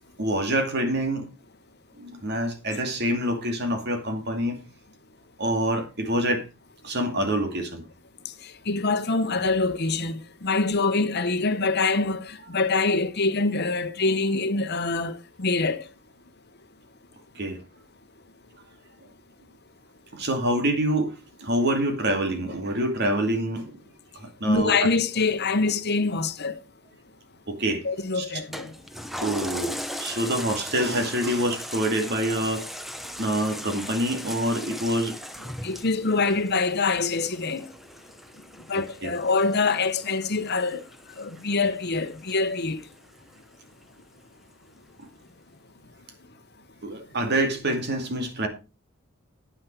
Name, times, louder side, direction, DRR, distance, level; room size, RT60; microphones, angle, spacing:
voice 1, 0.2-1.3 2.0-4.6 5.4-6.4 6.8-7.8 17.4-17.6 20.1-21.1 21.4-23.7 24.2-24.9 27.5-27.8 28.1-28.3 29.2-32.6 33.2-35.1 38.7-39.1 46.8-48.5, right 1 dB, 50° right, 2.3 m, -26 dB
voice 2, 8.7-15.8 24.5-26.6 27.8-28.7 35.6-37.7 38.7-40.8 41.2-42.8, left 3 dB, 50° left, 1.0 m, -25 dB
Toilet flush, 28.5-43.3 43.8-43.9, equal, ahead, 0.8 m, -39 dB
9.5 x 9.4 x 4.7 m
head